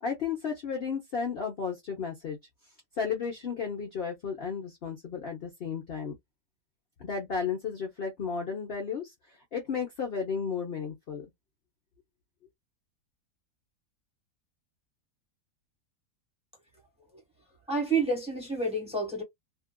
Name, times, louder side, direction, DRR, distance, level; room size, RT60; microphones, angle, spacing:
voice 1, 0.0-2.4 3.0-6.1 7.0-11.3, left 6 dB, 50° left, 0.7 m, -33 dB
voice 2, 17.7-19.2, right 3 dB, 5° right, 1.0 m, -29 dB
2.8 x 2.4 x 2.2 m
omnidirectional pair, 1.8 m